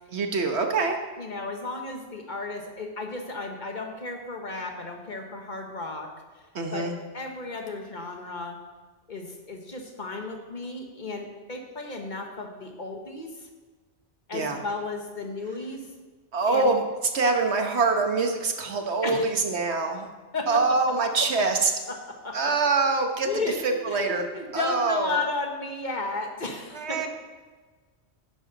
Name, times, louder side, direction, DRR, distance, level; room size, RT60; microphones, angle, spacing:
voice 1, 0.1-1.0 6.5-6.9 14.3-14.6 16.3-16.8 17.1-20.1 20.5-21.7 22.3-23.3 23.6-24.2 24.5-25.2 26.7-27.1, right 3 dB, 75° right, 4 dB, 1.4 m, -24 dB
voice 2, 1.2-6.1 6.7-6.9 7.1-8.6 9.1-13.5 14.3-15.9 16.5-16.7 19.0-19.3 20.3-20.6 21.9-22.5 23.2-27.1, left 3 dB, 45° left, 3 dB, 1.3 m, -34 dB
11.0 x 10.0 x 4.0 m, 1.4 s
omnidirectional pair, 1.1 m